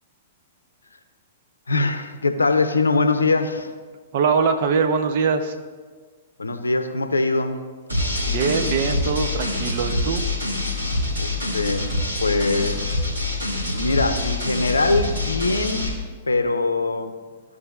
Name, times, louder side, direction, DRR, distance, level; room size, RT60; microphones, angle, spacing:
voice 1, 1.7-3.7 6.4-7.6 11.2-11.9 12.2-15.9 16.3-17.1, left 3 dB, 75° left, 8 dB, 0.6 m, -23 dB
voice 2, 4.1-5.5 8.3-10.2, right 5 dB, 50° right, 7 dB, 0.7 m, -22 dB
sound 1, 7.9-15.9, left 2 dB, 80° right, 2.2 m, -25 dB
14.5 x 4.8 x 2.4 m, 1.5 s
figure-of-eight pair, 105°, 0 cm